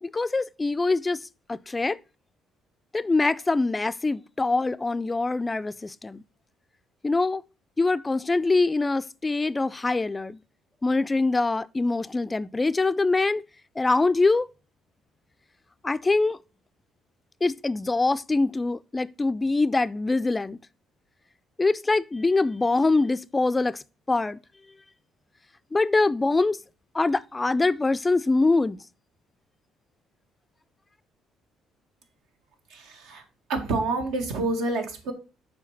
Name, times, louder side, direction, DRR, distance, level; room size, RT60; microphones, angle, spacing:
voice 1, 0.0-1.2 1.5-2.0 2.9-6.2 7.0-7.4 7.8-10.4 10.8-13.4 13.8-14.5 15.8-16.4 17.4-20.6 21.6-23.8 24.1-24.4 25.7-26.6 26.9-28.8, left 3 dB, 20° left, 0.3 m, -24 dB
voice 2, 32.7-33.2 33.5-35.1, right 3 dB, 85° right, 1.8 m, -28 dB
7.3 x 4.6 x 5.7 m
cardioid pair, 90°, 0 cm